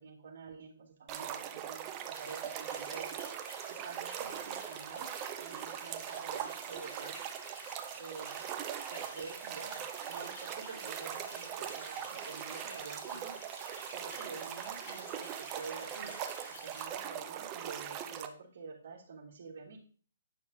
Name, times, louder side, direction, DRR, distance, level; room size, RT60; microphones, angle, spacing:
voice 1, 0.0-3.2 3.7-5.1 5.4-7.2 8.0-8.5 8.9-13.4 13.9-16.1 16.5-19.8, right 5 dB, 55° right, -1 dB, 3.1 m, -48 dB
sound 1, 1.1-18.3, right 9 dB, 20° right, 0.7 m, -41 dB
sound 2, 2.1-16.8, left 1 dB, 20° left, 4.6 m, -51 dB
9.6 x 5.8 x 4.3 m, 0.43 s
hypercardioid pair, 160°, 0 cm